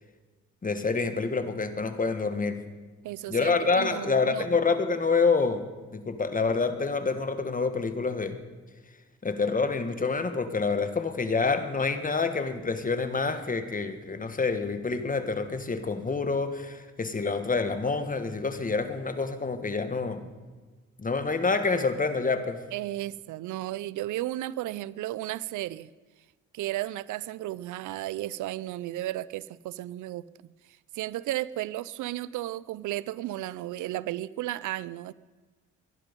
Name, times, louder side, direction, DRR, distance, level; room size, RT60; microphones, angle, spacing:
voice 1, 0.6-2.6 3.3-5.6 5.9-8.4 9.2-20.3 21.0-22.6, left 4 dB, 25° left, 9 dB, 1.5 m, -27 dB
voice 2, 3.0-4.5 22.7-25.9 26.5-30.3 30.9-35.1, right 15 dB, 80° right, 20 dB, 0.5 m, -34 dB
23.5 x 10.5 x 5.3 m, 1.3 s
cardioid pair, 90°, 30 cm